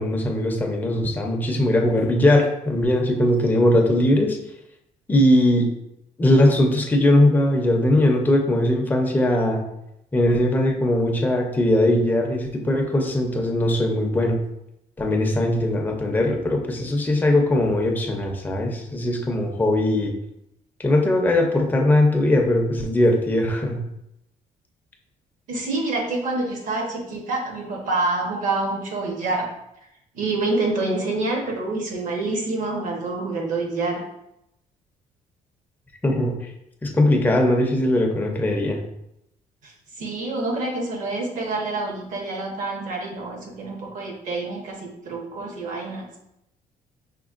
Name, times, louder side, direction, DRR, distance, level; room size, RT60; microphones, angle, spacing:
voice 1, 0.0-4.4 5.1-5.7 6.2-9.6 10.1-14.4 15.0-20.1 20.8-23.8 36.0-36.3 36.8-38.8, left 1 dB, 10° left, 1 dB, 0.6 m, -20 dB
voice 2, 25.5-29.5 30.1-34.0 39.6-46.1, right 2 dB, 65° right, 0 dB, 1.1 m, -27 dB
5.1 x 3.2 x 2.4 m, 0.83 s
cardioid pair, 155°, 14 cm